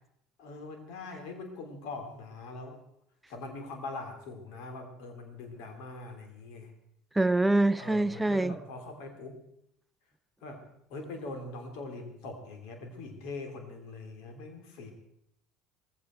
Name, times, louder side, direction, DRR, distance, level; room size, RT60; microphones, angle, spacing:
voice 1, 0.4-2.8 3.3-6.7 7.8-9.4 10.4-10.6 10.9-14.9, left 3 dB, 65° left, 3.2 m, -42 dB
voice 2, 7.2-8.5, right 2 dB, 10° right, 0.6 m, -25 dB
18.0 x 15.5 x 4.5 m
figure-of-eight pair, 65°, 0 cm